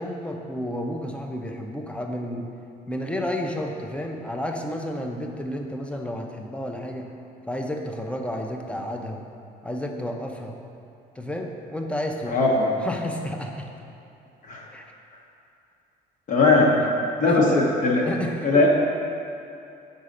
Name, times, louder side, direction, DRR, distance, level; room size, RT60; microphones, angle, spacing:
voice 1, 0.0-2.5 2.9-7.1 7.5-9.2 9.6-10.5 11.2-12.5 12.8-13.7 14.7-14.8 17.3-17.7 18.0-18.7, left 1 dB, 5° left, 2 dB, 0.5 m, -31 dB
voice 2, 12.3-12.7 14.5-14.6 16.3-16.7 17.2-18.0 18.4-18.7, left 3 dB, 50° left, -3 dB, 0.9 m, -19 dB
5.5 x 4.0 x 5.0 m, 2.7 s
cardioid pair, 110°, 17 cm